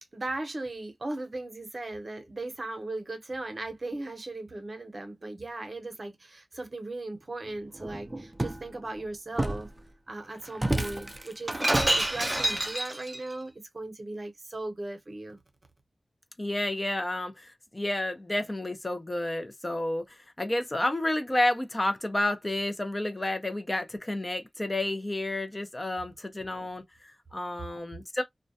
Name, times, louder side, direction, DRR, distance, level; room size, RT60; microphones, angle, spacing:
voice 1, 0.0-9.7 10.1-15.4, right 2 dB, 50° right, 0.8 m, -38 dB
Shatter, 7.8-8.6 9.4-9.7 10.6-13.2, right 1 dB, 25° right, 0.5 m, -28 dB
voice 2, 16.4-28.2, left 1 dB, 25° left, 0.5 m, -30 dB
2.2 x 2.2 x 2.6 m
wide cardioid pair, 65°, 0 cm